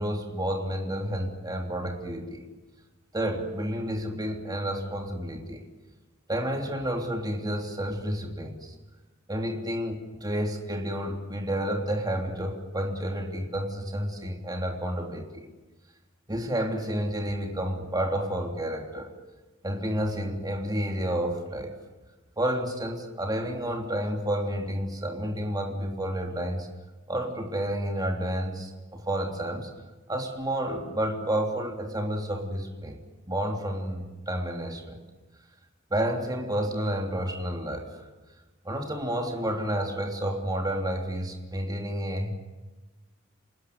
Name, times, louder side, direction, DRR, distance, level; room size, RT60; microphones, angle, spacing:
voice 1, 0.0-2.4 3.1-5.6 6.3-8.7 9.3-15.5 16.3-19.1 19.6-21.8 22.4-26.7 27.1-29.7 30.1-33.0 33.3-35.0 35.9-38.1 38.6-42.3, equal, 20° right, 2 dB, 3.2 m, -30 dB
28.5 x 20.0 x 9.6 m, 1.2 s
head